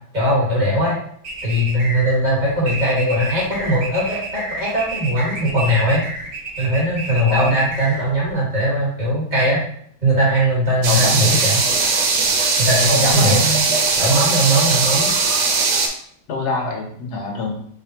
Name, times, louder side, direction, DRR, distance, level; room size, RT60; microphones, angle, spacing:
voice 1, 0.1-1.0 1.4-6.0 6.6-9.6 10.0-11.6 12.6-13.6 14.0-15.1, equal, 30° right, -8 dB, 1.6 m, -19 dB
sound 1, 1.2-8.3, right 2 dB, 65° right, 1.3 m, -30 dB
voice 2, 7.2-7.5 10.8-11.3 12.9-13.5 16.3-17.5, left 3 dB, 75° left, 0 dB, 1.4 m, -24 dB
sound 2, 10.8-15.9, right 4 dB, 85° right, 1.3 m, -19 dB
3.8 x 3.6 x 2.8 m, 0.63 s
omnidirectional pair, 1.7 m